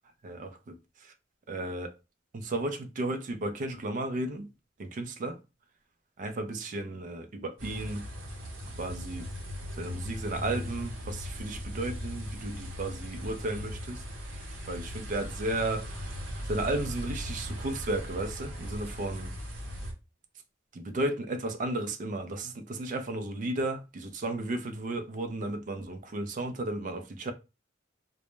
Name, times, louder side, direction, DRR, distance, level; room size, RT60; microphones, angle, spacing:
voice 1, 0.2-1.1 1.5-2.0 2.3-4.5 4.8-5.4 6.2-8.1 8.7-9.3 9.8-19.3 20.7-27.3, right 2 dB, 40° right, 0.3 m, -34 dB
sound 1, 7.6-19.9, equal, 85° right, 0.7 m, -39 dB
2.1 x 2.0 x 3.0 m
head